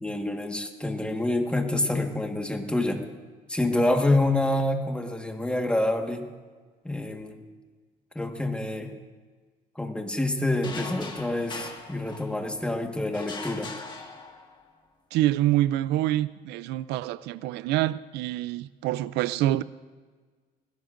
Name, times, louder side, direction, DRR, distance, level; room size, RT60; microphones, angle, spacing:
voice 1, 0.0-3.0 3.5-6.3 6.8-7.4 8.1-8.9 9.7-13.7, left 1 dB, 5° left, 1.4 m, -27 dB
sound 1, 10.6-12.6 13.1-14.7, left 3 dB, 25° left, 1.7 m, -40 dB
voice 2, 15.1-19.6, right 14 dB, 85° right, 0.4 m, -26 dB
20.0 x 16.0 x 2.5 m
cardioid pair, 110°, 17 cm